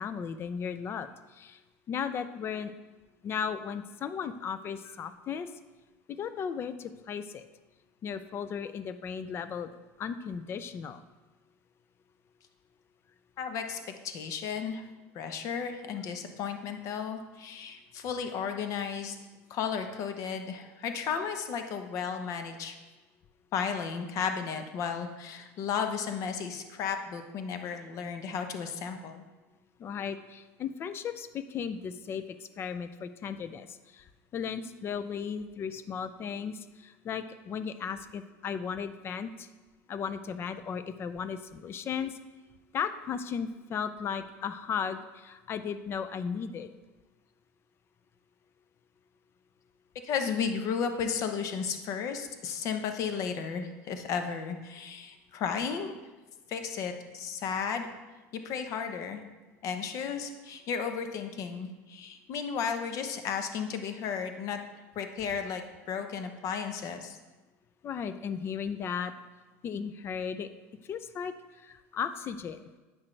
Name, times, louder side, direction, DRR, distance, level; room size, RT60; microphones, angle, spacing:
voice 1, 0.0-1.6 1.9-2.7 3.2-5.5 6.1-7.5 8.0-9.7 10.0-11.0 29.8-34.0 34.3-39.5 39.9-42.1 42.7-46.7 67.8-69.1 69.6-70.5 70.9-72.6, left 7 dB, 35° left, 12 dB, 0.5 m, -36 dB
voice 2, 13.4-13.8 14.0-14.8 15.1-19.1 19.5-22.8 23.5-29.2 50.0-55.9 56.5-57.9 58.3-59.2 59.6-64.6 65.0-67.2, left 6 dB, 50° left, 7 dB, 0.8 m, -34 dB
8.7 x 5.9 x 3.3 m, 1.2 s
supercardioid pair, 115°, 7 cm